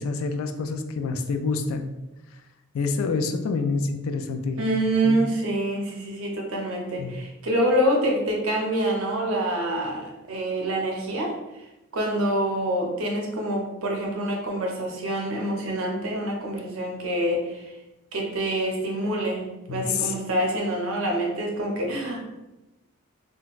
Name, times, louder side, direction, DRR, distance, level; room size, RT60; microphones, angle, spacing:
voice 1, 0.0-1.9 2.7-4.6 5.0-5.3 7.0-7.2 19.7-20.1, left 4 dB, 75° left, 6 dB, 0.3 m, -27 dB
voice 2, 4.6-11.3 11.9-17.7 18.1-22.2, right 1 dB, 75° right, 0 dB, 0.7 m, -26 dB
3.8 x 2.2 x 2.4 m, 1.0 s
head